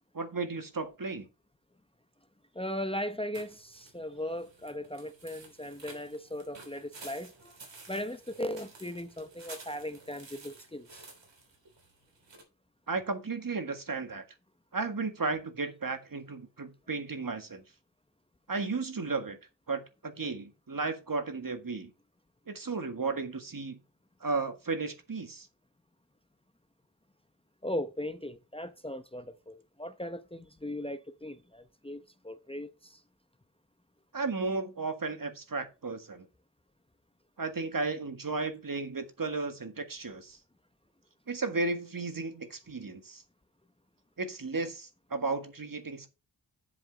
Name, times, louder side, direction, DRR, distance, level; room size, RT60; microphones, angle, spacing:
voice 1, 0.1-1.3 12.9-14.2 14.7-17.6 18.5-19.4 19.7-21.9 22.5-23.8 24.2-25.5 34.1-36.3 37.4-40.4 41.3-43.2 44.2-46.1, right 3 dB, 50° right, 1.7 m, -34 dB
voice 2, 2.5-7.6 7.9-11.1 27.6-33.0, left 1 dB, 15° left, 0.8 m, -38 dB
sound 1, 3.3-12.4, right 3 dB, 80° right, 3.4 m, -52 dB
7.6 x 7.3 x 4.0 m
cardioid pair, 50°, 43 cm